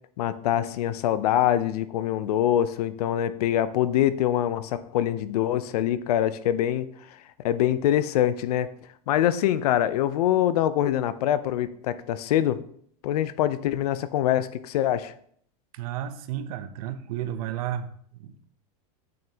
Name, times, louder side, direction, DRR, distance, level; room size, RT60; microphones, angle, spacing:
voice 1, 0.2-6.9 7.4-8.7 9.1-12.6 13.0-15.1, left 11 dB, 75° left, 15 dB, 0.6 m, -24 dB
voice 2, 15.7-18.5, right 10 dB, 70° right, 10 dB, 0.8 m, -33 dB
8.8 x 6.4 x 2.9 m, 0.64 s
supercardioid pair, 145°, 20 cm